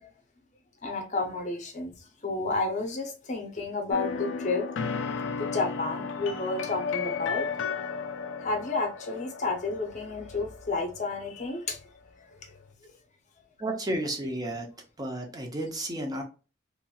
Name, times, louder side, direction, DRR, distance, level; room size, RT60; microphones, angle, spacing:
voice 1, 0.8-1.9 2.2-4.6 5.4-7.5 8.4-11.8, left 3 dB, 40° left, 0.6 m, -31 dB
sound 1, 3.9-11.5, left 5 dB, 75° left, 0.4 m, -34 dB
voice 2, 13.6-14.7 15.0-16.2, right 1 dB, 20° right, 0.6 m, -32 dB
2.9 x 2.6 x 2.2 m
head